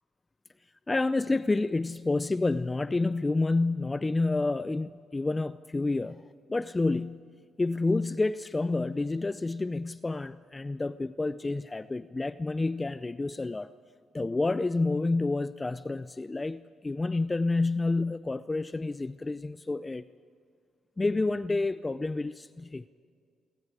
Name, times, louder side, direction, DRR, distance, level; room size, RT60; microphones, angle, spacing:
voice 1, 0.9-6.2 6.5-7.3 7.6-13.7 14.1-20.0 21.0-22.8, left 3 dB, 20° left, 0.5 m, -29 dB
28.0 x 23.5 x 4.9 m
cardioid pair, 90°, 0 cm